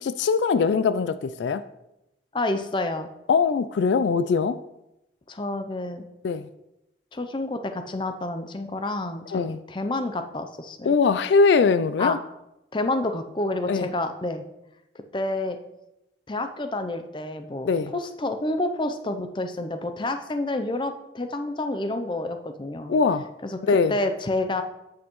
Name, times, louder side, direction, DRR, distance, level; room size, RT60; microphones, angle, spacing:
voice 1, 0.0-1.6 3.3-4.6 6.2-6.5 9.3-9.6 10.9-12.2 13.7-13.9 17.7-17.9 22.9-23.3 23.6-23.9, left 5 dB, 75° left, 0.3 m, -21 dB
voice 2, 2.3-3.1 5.3-6.0 7.1-10.9 12.0-12.2 12.7-14.4 14.9-15.6 16.3-22.9 23.4-24.6, left 2 dB, 25° left, 0.5 m, -29 dB
8.6 x 7.2 x 3.1 m
head